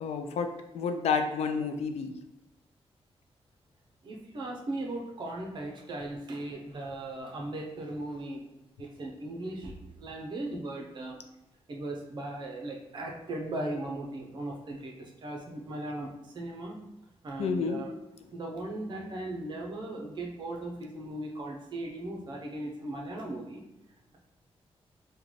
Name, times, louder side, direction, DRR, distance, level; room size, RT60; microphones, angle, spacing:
voice 1, 0.0-2.2 17.4-17.8, left 5 dB, 90° left, 6 dB, 0.4 m, -30 dB
voice 2, 4.0-8.4 8.8-11.2 11.7-16.8 17.2-17.9 18.3-23.6, right 2 dB, 45° right, 0 dB, 0.6 m, -38 dB
3.7 x 2.2 x 3.1 m, 0.89 s
wide cardioid pair, 160°, 10 cm